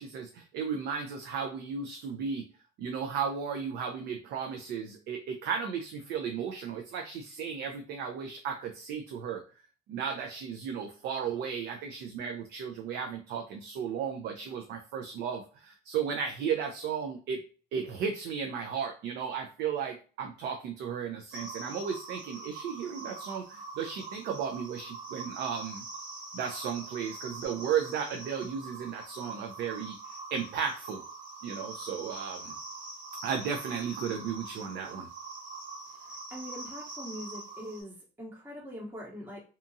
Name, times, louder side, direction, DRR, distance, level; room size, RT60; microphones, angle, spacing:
voice 1, 0.0-2.5 2.8-9.4 9.9-17.4 17.7-25.8 26.3-30.0 30.3-31.0 31.4-32.5 33.2-35.1, right 7 dB, 75° right, 4 dB, 0.4 m, -34 dB
sound 1, 21.3-37.8, right 3 dB, 50° right, 1.0 m, -44 dB
voice 2, 36.3-39.4, equal, 10° right, -4 dB, 0.8 m, -42 dB
2.8 x 2.3 x 2.6 m, 0.37 s
cardioid pair, 110°, 17 cm